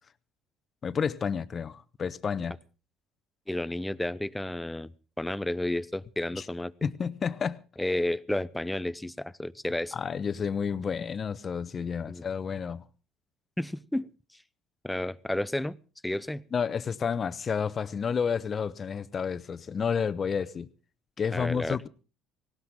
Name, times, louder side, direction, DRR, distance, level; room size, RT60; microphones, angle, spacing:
voice 1, 0.8-2.6 6.4-6.5 6.8-7.6 9.9-12.8 16.5-20.7 21.2-21.9, left 6 dB, 40° left, 0.9 m, -30 dB
voice 2, 3.5-6.7 7.8-9.9 12.1-12.3 13.6-14.1 14.8-15.8 16.0-16.4 21.3-21.8, left 1 dB, 10° left, 0.7 m, -31 dB
18.5 x 17.0 x 3.8 m
hypercardioid pair, 65°, 0 cm